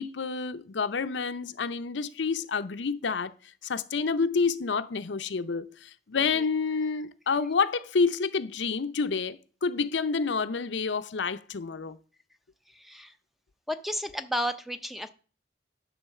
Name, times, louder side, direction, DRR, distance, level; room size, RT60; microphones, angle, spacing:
voice 1, 0.0-3.3 3.6-12.0, left 5 dB, 90° left, 0.6 m, -29 dB
voice 2, 12.7-13.1 13.7-15.1, equal, ahead, 0.5 m, -32 dB
10.0 x 4.0 x 6.7 m
head